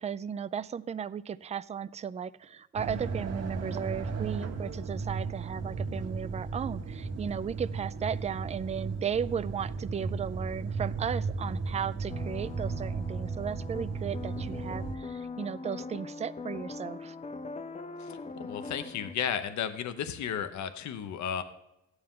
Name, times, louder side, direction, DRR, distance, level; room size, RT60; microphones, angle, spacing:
voice 1, 0.0-17.1, right 7 dB, 25° right, 16 dB, 0.3 m, -35 dB
sound 1, 2.7-15.0, right 4 dB, 55° right, 1.4 m, -35 dB
sound 2, 12.1-19.1, left 4 dB, 20° left, 0.6 m, -41 dB
voice 2, 18.0-21.4, left 8 dB, 70° left, 10 dB, 0.9 m, -34 dB
14.0 x 9.7 x 3.7 m, 0.89 s
cardioid pair, 90°, 30 cm